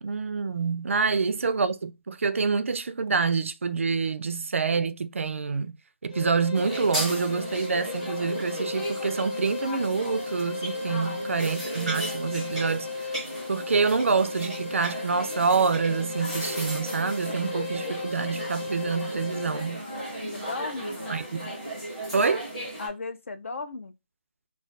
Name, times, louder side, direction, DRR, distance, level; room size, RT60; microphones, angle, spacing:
voice 1, 0.0-5.7 6.0-13.1 13.5-19.8 21.1-21.5 22.1-22.5, right 5 dB, 75° right, 0.4 m, -27 dB
sound 1, 6.1-19.8, left 4 dB, 30° left, 0.8 m, -36 dB
sound 2, 6.5-22.9, right 1 dB, ahead, 0.5 m, -36 dB
voice 2, 10.8-11.5 17.3-17.9 20.3-21.1 22.8-23.9, left 3 dB, 70° left, 0.4 m, -38 dB
2.3 x 2.2 x 2.5 m
hypercardioid pair, 180°, 7 cm